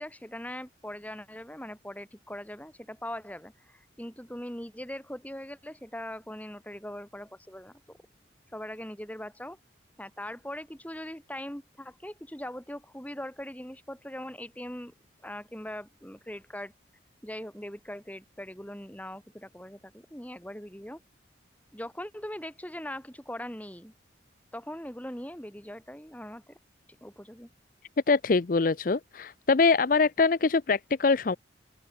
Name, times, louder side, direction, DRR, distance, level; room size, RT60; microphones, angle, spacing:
voice 1, 0.0-8.0 8.5-9.6 10.0-14.9 15.2-16.7 17.2-21.0 21.7-23.9 24.5-26.6 27.0-27.5, left 1 dB, 10° left, 3.5 m, -41 dB
voice 2, 28.1-31.4, left 4 dB, 45° left, 0.5 m, -23 dB
open air
head